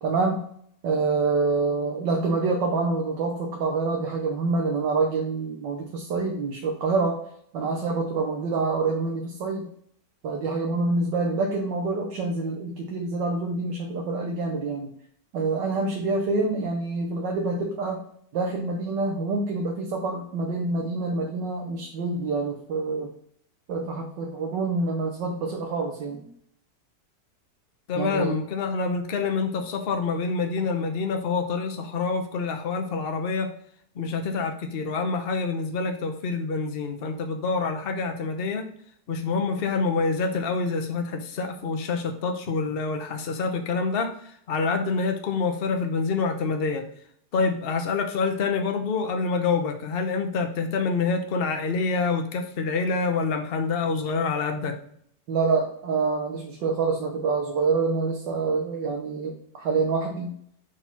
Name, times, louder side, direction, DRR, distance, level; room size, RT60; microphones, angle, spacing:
voice 1, 0.0-0.4 0.8-7.2 7.5-9.7 10.2-14.9 15.3-18.1 18.3-23.1 23.7-26.3 28.0-28.4 55.3-60.4, right 3 dB, 85° right, 1 dB, 1.6 m, -26 dB
voice 2, 27.9-33.5 33.9-38.7 39.1-46.8 47.3-54.7, left 4 dB, 45° left, 4 dB, 0.9 m, -27 dB
4.8 x 4.3 x 5.7 m, 0.66 s
omnidirectional pair, 1.9 m